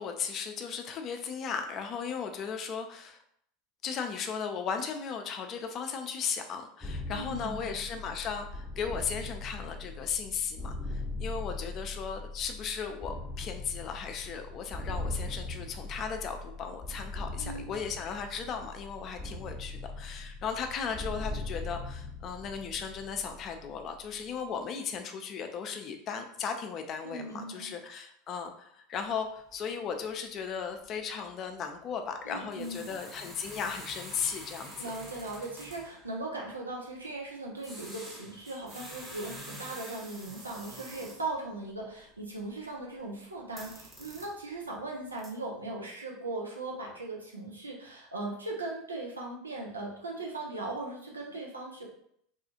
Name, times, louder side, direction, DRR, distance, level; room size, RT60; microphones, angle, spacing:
voice 1, 0.0-3.2 3.8-34.9, left 6 dB, 40° left, 6 dB, 0.4 m, -36 dB
sound 1, 6.8-24.5, left 2 dB, 5° left, 0.7 m, -40 dB
voice 2, 7.1-7.7 17.4-17.7 27.0-27.7 32.2-32.9 34.8-51.9, right 2 dB, 90° right, -2 dB, 0.6 m, -39 dB
sound 2, 29.4-29.6 29.9-30.1 30.4-30.5 30.8-31.0 32.5-36.1 37.6-41.3 41.7-43.1 43.4-44.6 45.0-45.3, right 1 dB, 25° right, 0.9 m, -47 dB
2.7 x 2.3 x 2.8 m, 0.69 s
hypercardioid pair, 80°, 0 cm